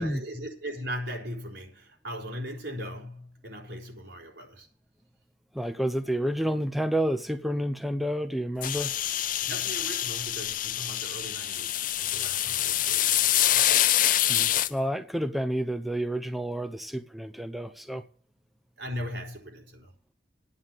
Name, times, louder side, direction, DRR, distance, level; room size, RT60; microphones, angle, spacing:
voice 1, 0.0-4.7 9.5-13.8 18.8-19.9, equal, 80° right, 4.2 m, -39 dB
voice 2, 5.5-8.9 14.3-18.0, equal, ahead, 0.7 m, -29 dB
sound 1, 8.6-14.7, left 12 dB, 50° left, 0.6 m, -26 dB
9.6 x 8.7 x 7.4 m
head